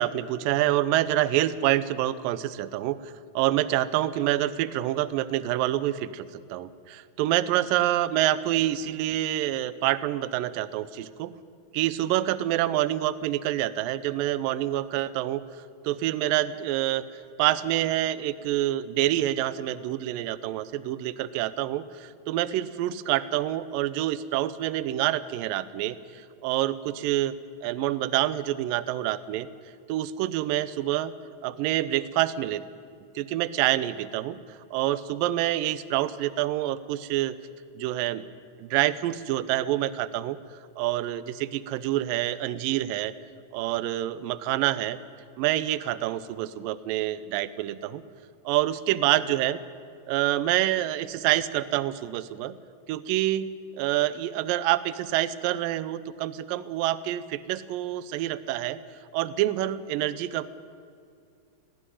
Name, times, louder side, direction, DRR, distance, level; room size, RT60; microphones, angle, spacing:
voice 1, 0.0-11.3 11.7-15.4 15.8-17.0 17.4-27.3 27.6-29.5 29.9-31.1 31.4-32.6 33.2-37.4 37.8-38.3 38.6-43.1 43.5-45.0 45.4-48.0 48.5-49.6 50.1-52.6 52.9-58.8 59.1-60.5, right 14 dB, 85° right, 16 dB, 2.4 m, -27 dB
17.5 x 17.0 x 9.9 m, 2.3 s
omnidirectional pair, 4.0 m